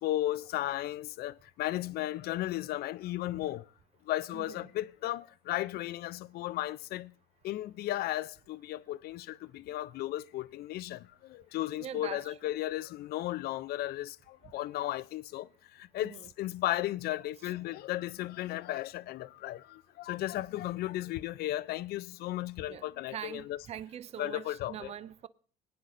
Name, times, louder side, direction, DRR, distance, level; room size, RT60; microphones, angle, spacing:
voice 1, 0.0-3.6 4.1-7.1 7.4-11.0 11.3-15.5 15.9-23.6 24.2-24.9, left 15 dB, 65° left, 0.4 m, -35 dB
voice 2, 4.3-4.7 11.8-12.4 16.0-16.3 20.3-20.4 22.7-25.3, right 10 dB, 40° right, 0.4 m, -43 dB
20.0 x 9.6 x 2.6 m
cardioid pair, 110°, 17 cm